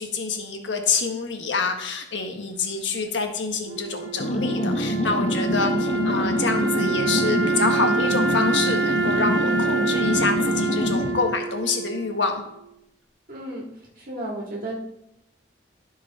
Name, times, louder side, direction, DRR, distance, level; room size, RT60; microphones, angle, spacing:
voice 1, 0.0-12.4, left 4 dB, 85° left, 4 dB, 1.3 m, -27 dB
Wind instrument woodwind instrument, 3.6-12.7, right 4 dB, 90° right, 0.9 m, -27 dB
sound 1, 4.2-11.3, left 1 dB, 35° left, 0.6 m, -26 dB
voice 2, 13.3-13.7 13.9-14.7, right 1 dB, 50° right, -4 dB, 1.8 m, -33 dB
13.0 x 4.8 x 4.1 m, 0.83 s
head